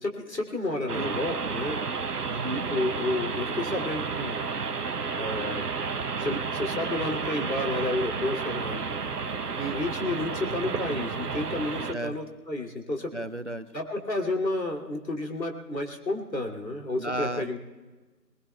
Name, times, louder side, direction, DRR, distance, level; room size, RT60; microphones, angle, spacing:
voice 1, 0.0-1.8 2.7-4.4 5.2-5.7 6.2-8.8 9.6-13.1 13.7-17.6, left 2 dB, 85° left, 2 dB, 2.8 m, -31 dB
sound 1, 0.9-11.9, right 5 dB, 65° right, 0.9 m, -31 dB
voice 2, 2.3-2.7 10.9-11.1 11.9-12.2 13.1-13.7 17.0-17.6, right 1 dB, 45° right, 11 dB, 0.4 m, -34 dB
23.0 x 20.0 x 2.3 m, 1.2 s
figure-of-eight pair, 165°, 50 cm